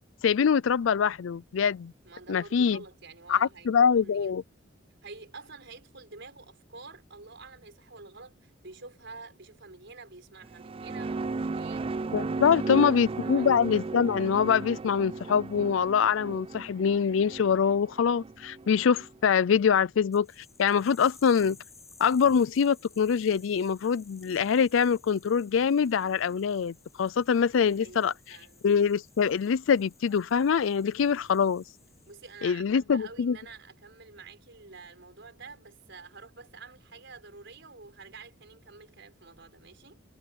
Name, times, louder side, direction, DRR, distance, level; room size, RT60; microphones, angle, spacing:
voice 1, 0.2-1.9 2.3-2.8 3.3-4.4 12.1-21.6 22.0-28.4 28.6-31.6 32.4-33.4, left 6 dB, 75° left, 0.4 m, -24 dB
voice 2, 2.0-4.3 5.0-11.9 12.4-13.5 19.7-19.9 27.8-28.7 31.1-31.4 32.1-40.0, right 4 dB, 65° right, 5.4 m, -48 dB
sound 1, 10.4-19.1, right 3 dB, 30° right, 0.3 m, -35 dB
sound 2, 20.1-32.4, left 4 dB, 15° left, 7.4 m, -57 dB
head